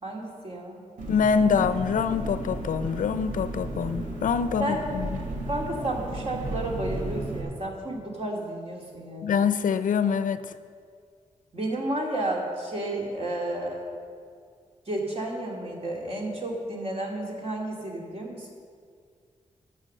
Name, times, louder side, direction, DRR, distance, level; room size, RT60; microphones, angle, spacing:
voice 1, 0.0-0.8 4.6-4.8 5.5-9.3 11.5-13.9 14.9-18.5, right 1 dB, 50° right, -1 dB, 2.5 m, -32 dB
Engine, 1.0-7.4, right 1 dB, 85° right, 2.1 m, -34 dB
voice 2, 1.1-5.2 9.2-10.4, left 6 dB, 90° left, 12 dB, 0.6 m, -25 dB
13.0 x 6.7 x 6.6 m, 2.1 s
wide cardioid pair, 90°, 13 cm